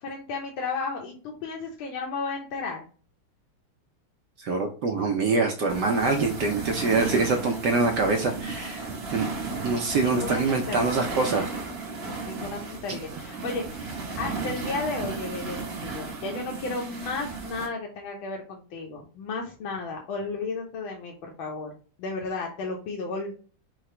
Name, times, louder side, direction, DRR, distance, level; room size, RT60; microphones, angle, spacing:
voice 1, 0.0-2.8 9.5-9.6 10.0-11.0 11.9-21.7 22.0-23.3, left 3 dB, 70° left, 0 dB, 1.5 m, -34 dB
voice 2, 4.4-9.3 9.6-11.5, right 3 dB, 70° right, 3 dB, 1.0 m, -25 dB
sound 1, 5.7-17.7, right 4 dB, 35° right, 1.1 m, -35 dB
4.8 x 2.2 x 4.3 m, 0.40 s
omnidirectional pair, 2.4 m